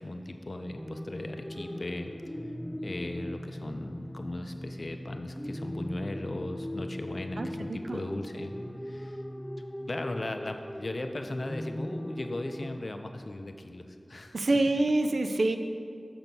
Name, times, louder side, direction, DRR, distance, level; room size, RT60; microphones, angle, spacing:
voice 1, 0.0-2.1 2.8-8.5 8.8-9.2 9.9-14.4, left 2 dB, 55° left, 6 dB, 0.6 m, -37 dB
sound 1, 0.8-12.8, equal, ahead, 0.5 m, -39 dB
voice 2, 7.4-8.0 14.3-15.6, right 2 dB, 80° right, 7 dB, 0.4 m, -26 dB
6.9 x 6.0 x 5.3 m, 2.3 s
wide cardioid pair, 65°, 0 cm